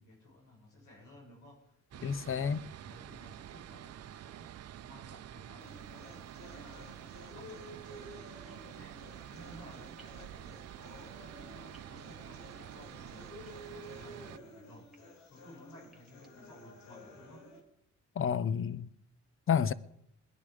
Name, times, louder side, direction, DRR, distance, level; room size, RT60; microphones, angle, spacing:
voice 1, 0.0-10.5 10.7-14.9 15.3-17.5, left 1 dB, 85° left, 6.8 m, -56 dB
sound 1, 1.9-14.4, right 11 dB, 55° right, 0.6 m, -48 dB
voice 2, 2.0-2.6 18.2-18.9 19.5-19.7, left 7 dB, 45° left, 0.7 m, -30 dB
sound 2, 5.6-17.6, left 1 dB, 65° left, 3.1 m, -52 dB
sound 3, 8.5-8.6 10.0-10.2 11.7-11.9 13.5-14.0 14.7-15.0 15.8-16.3, right 3 dB, ahead, 2.8 m, -62 dB
20.5 x 10.5 x 5.1 m
cardioid pair, 90°, 30 cm